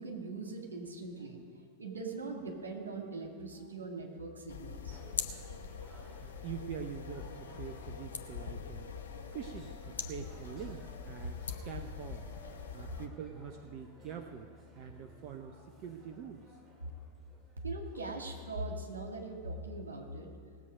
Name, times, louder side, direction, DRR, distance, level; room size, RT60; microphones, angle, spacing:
voice 1, 0.0-1.4 1.8-5.0 17.6-20.3, right 2 dB, 75° right, 1 dB, 2.1 m, -41 dB
sound 1, 4.5-13.1, left 6 dB, 65° left, 0.9 m, -43 dB
sound 2, 4.9-18.2, left 1 dB, 10° right, 2.2 m, -58 dB
voice 2, 6.2-12.3 12.7-16.6, right 8 dB, 40° right, 6 dB, 0.7 m, -45 dB
19.5 x 8.0 x 5.2 m, 2.1 s
figure-of-eight pair, 90°, 0 cm